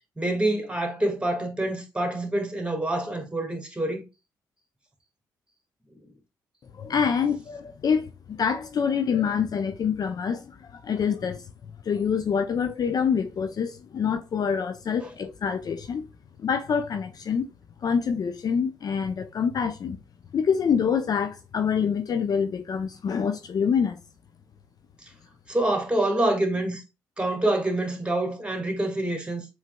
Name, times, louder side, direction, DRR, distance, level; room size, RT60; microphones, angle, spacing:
voice 1, 0.2-4.0 5.9-6.0 25.5-26.8 27.2-29.5, right 1 dB, 10° right, 1.9 m, -26 dB
voice 2, 6.8-11.4 11.9-16.0 16.4-17.5 17.8-20.0 20.3-24.0, left 6 dB, 45° left, 0.5 m, -26 dB
7.2 x 3.2 x 2.2 m
hypercardioid pair, 45°, 9 cm